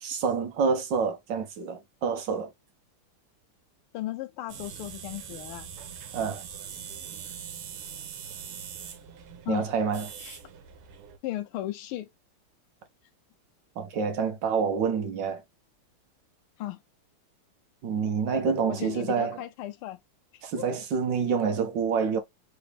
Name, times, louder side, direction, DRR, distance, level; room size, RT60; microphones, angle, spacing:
voice 1, 0.0-2.5 6.1-6.4 9.5-10.1 13.8-15.4 17.8-19.4 20.4-22.2, right 5 dB, 65° right, 1.4 m, -27 dB
voice 2, 3.9-5.7 9.5-9.7 10.2-10.4 11.2-12.1 16.6-16.8 18.7-20.0 20.5-20.8, left 14 dB, 85° left, 1.5 m, -36 dB
sound 1, 4.5-11.2, right 8 dB, 90° right, 1.7 m, -42 dB
4.0 x 3.2 x 3.3 m
omnidirectional pair, 2.4 m